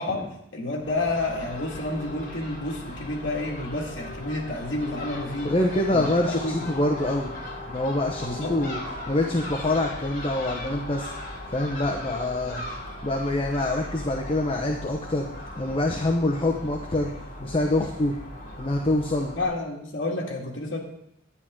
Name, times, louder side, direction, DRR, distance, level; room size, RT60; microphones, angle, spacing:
voice 1, 0.0-5.5 5.9-6.7 8.2-8.5 19.4-20.8, left 2 dB, 70° left, -2 dB, 2.0 m, -30 dB
Crow / Gull seagull, 0.8-19.4, left 1 dB, 45° left, 2.9 m, -38 dB
voice 2, 5.4-7.3 7.7-8.8 9.1-11.1 11.5-12.6 13.0-15.3 15.6-18.1 18.6-19.3, left 1 dB, 30° left, 1 dB, 0.9 m, -25 dB
11.0 x 10.5 x 3.7 m, 0.78 s
head